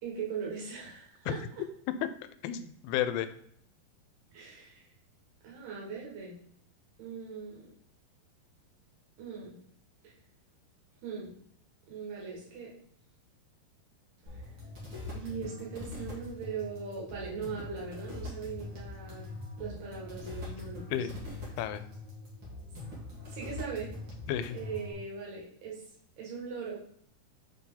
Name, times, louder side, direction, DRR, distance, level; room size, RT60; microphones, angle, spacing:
voice 1, 0.0-1.4 4.3-4.9 5.4-6.3 7.0-7.6 9.2-9.5 10.0-10.1 11.0-11.4 11.9-12.7 14.3-14.4 15.1-19.3 19.6-21.0 23.3-23.9 24.5-25.8 26.2-26.8, right 5 dB, 85° right, -4 dB, 3.8 m, -40 dB
voice 2, 2.4-3.3 20.9-21.2 21.6-21.8 24.3-24.6, left 10 dB, 85° left, 11 dB, 2.5 m, -32 dB
sound 1, 14.3-24.9, left 2 dB, 40° right, 2.0 m, -43 dB
6.9 x 4.2 x 3.8 m, 0.66 s
omnidirectional pair, 4.4 m